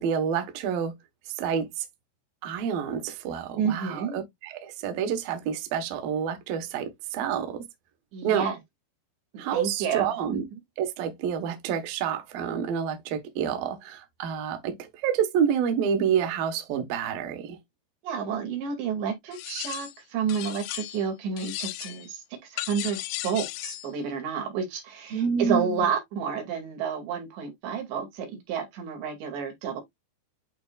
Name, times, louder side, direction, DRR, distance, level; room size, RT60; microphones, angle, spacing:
voice 1, 0.0-0.9 1.3-1.8 2.4-7.6 8.2-8.4 9.4-10.4 10.8-14.7 15.0-17.6 25.1-25.8, right 7 dB, 65° right, 2.7 m, -28 dB
voice 2, 3.6-4.2 8.1-8.6 9.5-10.4 18.0-22.2 22.5-29.8, right 7 dB, 80° right, 4.6 m, -30 dB
sound 1, 19.3-20.0 20.3-21.1 21.4-22.1 22.6-23.9, left 17 dB, 85° left, 2.8 m, -36 dB
11.5 x 4.0 x 2.4 m
omnidirectional pair, 4.9 m